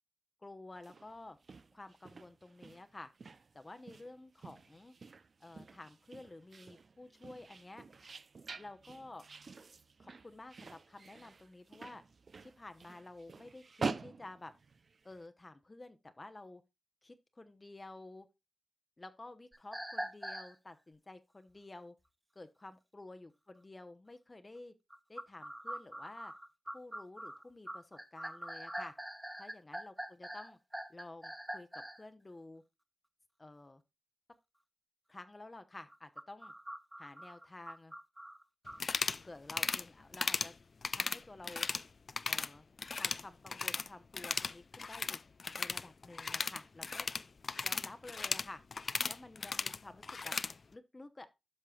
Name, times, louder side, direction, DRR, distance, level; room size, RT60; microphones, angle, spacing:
voice 1, 0.4-1.4 1.7-3.1 3.5-4.9 5.4-7.8 8.6-9.2 10.0-12.0 12.4-14.5 15.0-16.6 17.0-18.3 19.0-21.9 22.3-24.7 25.1-26.3 26.7-28.9 29.4-30.6 30.9-32.6 33.4-33.8 35.1-36.5 37.0-37.9 39.2-40.5 40.9-41.7 42.3-42.7 42.9-45.2 45.6-47.1 47.6-48.6 49.1-50.3 50.7-51.3, left 2 dB, 30° left, 0.9 m, -51 dB
sound 1, 0.7-15.2, right 4 dB, 60° right, 0.6 m, -47 dB
sound 2, 19.5-20.5 24.9-32.0 35.9-38.8, equal, 10° right, 1.3 m, -44 dB
sound 3, 38.7-39.2 39.5-39.8 40.1-40.5 40.8-41.8 42.1-42.5 42.8-43.9 44.1-50.5, left 4 dB, 55° left, 0.4 m, -36 dB
13.0 x 5.5 x 2.4 m
supercardioid pair, 40°, 0 cm